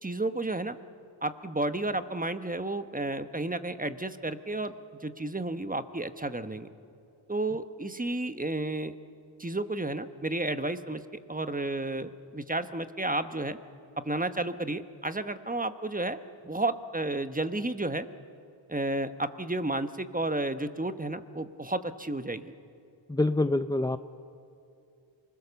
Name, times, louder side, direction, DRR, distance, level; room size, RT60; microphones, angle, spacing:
voice 1, 0.0-0.8 1.2-4.7 5.0-6.7 7.3-8.9 9.4-11.0 11.3-13.6 14.0-16.2 16.4-18.1 18.7-22.5, right 2 dB, 15° right, 10 dB, 1.2 m, -32 dB
voice 2, 23.1-24.0, left 2 dB, 10° left, 10 dB, 0.6 m, -26 dB
27.5 x 20.5 x 7.1 m, 2.6 s
cardioid pair, 55°, 47 cm